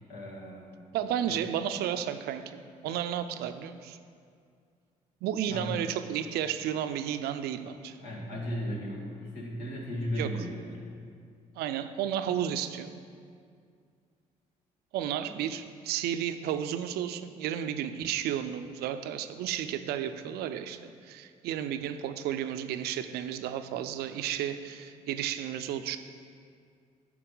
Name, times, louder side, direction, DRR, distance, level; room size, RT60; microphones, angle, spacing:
voice 1, 0.1-0.8 1.2-1.3 5.5-5.9 8.0-10.9 15.2-15.4, equal, 75° left, -3 dB, 1.8 m, -36 dB
voice 2, 0.9-4.0 5.2-8.0 10.2-10.3 11.6-12.9 14.9-26.0, right 10 dB, 80° right, 10 dB, 0.5 m, -32 dB
9.3 x 6.0 x 3.9 m, 2.2 s
supercardioid pair, 60°, 16 cm